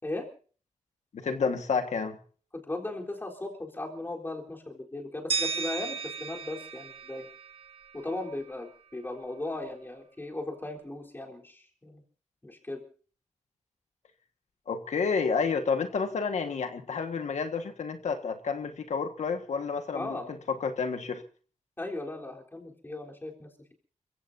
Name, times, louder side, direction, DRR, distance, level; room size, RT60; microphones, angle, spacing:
voice 1, 1.1-2.2 14.7-20.2 20.5-21.2, left 5 dB, 75° left, 7 dB, 1.7 m, -30 dB
voice 2, 2.5-7.3 7.9-12.0 12.4-12.8 19.9-20.4 21.8-23.7, left 2 dB, 15° left, 1 dB, 3.9 m, -37 dB
sound 1, 5.3-8.2, right 5 dB, 50° right, 1.3 m, -35 dB
29.5 x 16.0 x 2.7 m, 0.42 s
wide cardioid pair, 140°, 12 cm